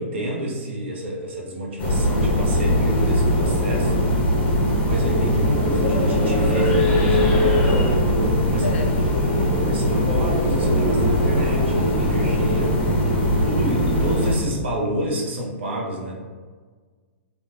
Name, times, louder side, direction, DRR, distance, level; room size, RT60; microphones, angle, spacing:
voice 1, 0.0-4.0 4.8-8.1 8.5-8.8 9.4-12.8 13.4-16.1, right 1 dB, 60° right, -1 dB, 0.7 m, -29 dB
sound 1, 1.8-14.4, equal, 20° left, 0.7 m, -20 dB
voice 2, 4.8-5.2 8.6-9.1 12.6-13.3, left 3 dB, 70° left, 3 dB, 0.5 m, -35 dB
3.0 x 2.4 x 2.5 m, 1.5 s
figure-of-eight pair, 115°, 7 cm